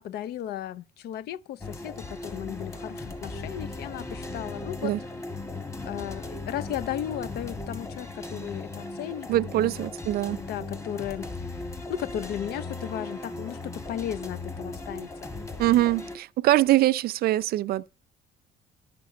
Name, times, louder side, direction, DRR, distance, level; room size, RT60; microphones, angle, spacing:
voice 1, 0.0-4.9 5.8-9.3 9.8-9.9 10.4-11.5 11.9-15.3, left 11 dB, 70° left, 0.6 m, -35 dB
sound 1, 1.6-16.2, left 2 dB, 15° left, 1.6 m, -37 dB
voice 2, 9.3-10.4 15.6-17.9, right 15 dB, 65° right, 0.5 m, -23 dB
10.5 x 6.0 x 8.3 m
cardioid pair, 110°, 17 cm